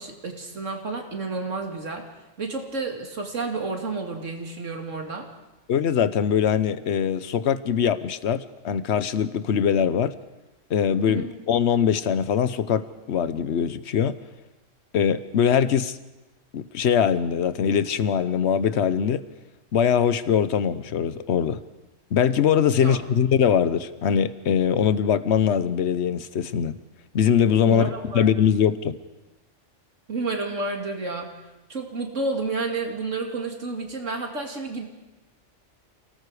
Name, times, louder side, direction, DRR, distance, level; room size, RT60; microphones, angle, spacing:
voice 1, 0.0-2.0 2.4-5.3 11.0-11.2 22.8-23.0 27.7-28.3 30.1-31.3 31.7-34.8, right 3 dB, 75° right, 3 dB, 2.7 m, -30 dB
voice 2, 5.7-10.1 10.7-14.2 14.9-16.0 16.5-19.2 19.7-21.6 22.1-26.8 27.1-29.0, left 8 dB, 65° left, 14 dB, 1.1 m, -22 dB
28.0 x 18.5 x 4.9 m, 1.1 s
omnidirectional pair, 1.3 m